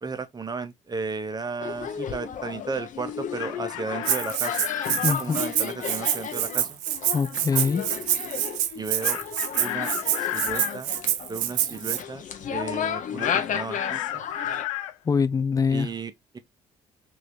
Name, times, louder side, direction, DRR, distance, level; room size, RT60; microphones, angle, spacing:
voice 1, 0.0-4.6 5.0-6.8 8.7-9.2 9.6-9.9 10.2-10.9 11.3-12.2 12.5-14.3 15.7-16.4, right 4 dB, 25° right, 0.8 m, -34 dB
sound 1, 1.6-14.6, left 8 dB, 50° left, 0.8 m, -34 dB
Chicken rooster, 3.1-5.2 9.0-10.8 13.2-14.9, left 13 dB, 85° left, 0.4 m, -32 dB
Rattle (instrument), 4.0-12.0, right 12 dB, 80° right, 0.5 m, -27 dB
voice 2, 5.0-5.4 7.1-7.9 15.1-15.9, left 5 dB, 20° left, 0.4 m, -24 dB
3.1 x 2.6 x 3.2 m
hypercardioid pair, 55°, 16 cm